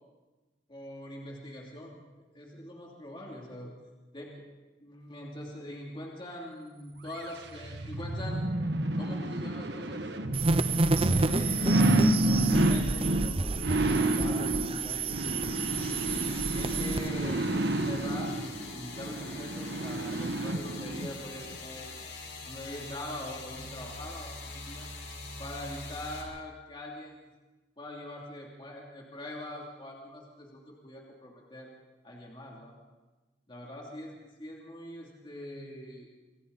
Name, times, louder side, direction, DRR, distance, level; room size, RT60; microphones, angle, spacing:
voice 1, 0.7-2.0 2.3-3.7 4.1-4.4 4.8-8.4 9.0-10.1 10.4-12.0 12.2-15.4 15.9-17.5 17.8-22.0 22.5-24.9 25.4-27.3 27.8-31.7 32.0-32.7 33.5-36.1, left 1 dB, 25° left, -2 dB, 2.9 m, -43 dB
sound 1, 7.2-21.1 21.5-21.6, right 1 dB, 65° right, 1.4 m, -29 dB
sound 2, 10.3-17.1, right 3 dB, 30° right, 0.6 m, -30 dB
sound 3, 15.6-26.2, left 3 dB, 70° left, 4.6 m, -43 dB
27.0 x 23.0 x 4.1 m, 1.2 s
head